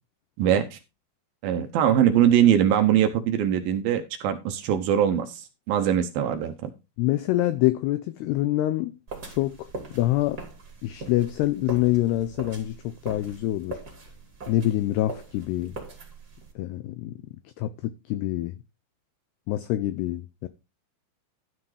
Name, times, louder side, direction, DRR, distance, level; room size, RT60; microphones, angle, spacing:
voice 1, 0.4-0.8 1.4-6.7, right 10 dB, 80° right, 2.1 m, -22 dB
voice 2, 7.0-8.9 9.3-9.7 9.9-10.4 10.8-13.8 14.5-15.8 16.6-17.1 17.6-18.5 19.5-20.5, left 15 dB, 85° left, 2.3 m, -26 dB
sound 1, 9.1-16.5, right 3 dB, 25° right, 2.9 m, -41 dB
13.0 x 6.0 x 4.9 m
omnidirectional pair, 5.5 m